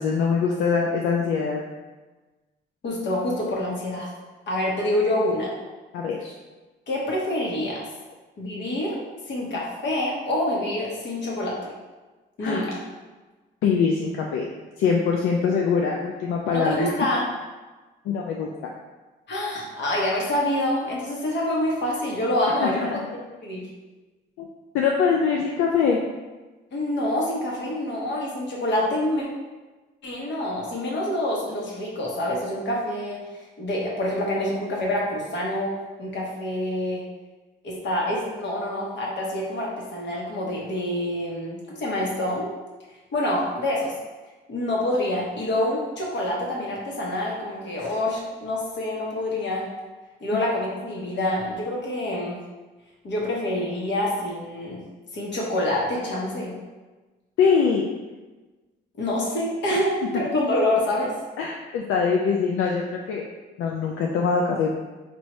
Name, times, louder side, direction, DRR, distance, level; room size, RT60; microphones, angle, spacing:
voice 1, 0.0-1.6 5.9-6.3 12.4-12.7 13.6-14.4 14.8-16.9 18.1-18.5 22.6-23.0 24.4-24.5 24.7-26.0 57.4-57.9 61.4-63.2 63.6-64.7, left 5 dB, 85° left, 0 dB, 0.4 m, -23 dB
voice 2, 2.8-4.1 4.5-5.5 6.9-7.8 8.4-9.0 9.3-11.6 12.4-12.8 16.5-17.3 19.3-23.7 26.7-29.2 30.0-35.7 36.0-37.0 37.6-42.5 43.1-43.9 44.5-49.7 50.2-52.4 53.0-54.8 55.1-56.5 59.0-61.1, left 1 dB, 65° left, -3 dB, 1.2 m, -26 dB
4.6 x 2.6 x 3.1 m, 1.2 s
cardioid pair, 90°, 20 cm